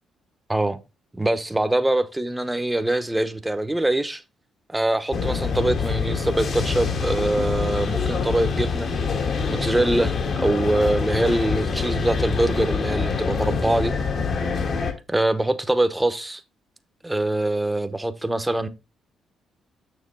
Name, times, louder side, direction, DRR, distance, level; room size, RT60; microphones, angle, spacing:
voice 1, 1.1-4.2 4.7-8.9 9.5-13.9 15.1-16.4 17.0-18.7, right 1 dB, 10° right, 0.9 m, -23 dB
sound 1, 5.1-14.9, left 5 dB, 55° left, 1.8 m, -25 dB
6.7 x 6.5 x 3.8 m
cardioid pair, 90°, 0 cm